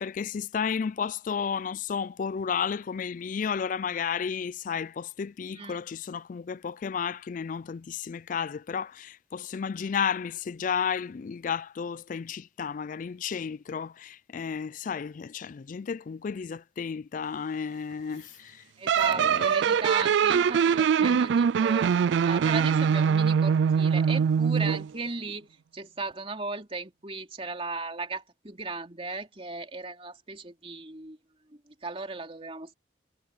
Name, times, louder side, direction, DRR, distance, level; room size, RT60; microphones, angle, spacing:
voice 1, 0.0-18.6 19.2-19.5 21.0-21.2, left 6 dB, 45° left, 0.3 m, -32 dB
voice 2, 18.8-21.9 22.2-25.5 25.7-31.2 31.7-32.7, right 3 dB, 30° right, 3.0 m, -36 dB
sound 1, 18.9-24.9, right 7 dB, 75° right, 0.3 m, -23 dB
head